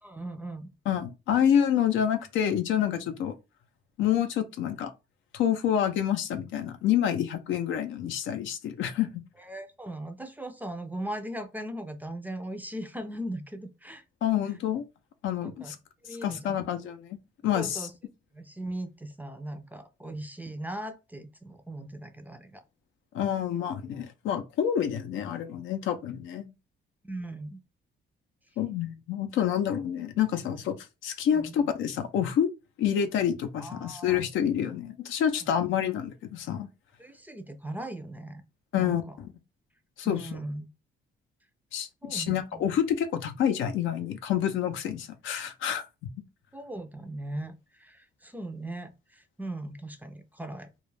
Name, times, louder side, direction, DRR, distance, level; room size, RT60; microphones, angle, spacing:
voice 1, 0.0-0.7 9.4-14.0 15.4-15.7 16.0-16.6 17.5-17.9 18.3-22.6 27.0-27.6 31.3-31.5 33.6-34.2 35.4-35.5 37.0-38.4 38.8-39.2 40.0-40.7 42.0-42.6 46.5-50.7, right 1 dB, 10° right, 0.4 m, -39 dB
voice 2, 0.9-3.3 4.0-4.9 5.3-9.1 14.2-14.9 15.2-15.8 16.2-17.2 17.4-17.9 23.1-26.4 28.6-30.7 31.0-32.5 32.8-36.7 38.7-39.3 40.0-40.4 41.7-45.9, left 9 dB, 75° left, 0.5 m, -28 dB
2.3 x 2.1 x 3.2 m
cardioid pair, 90°, 20 cm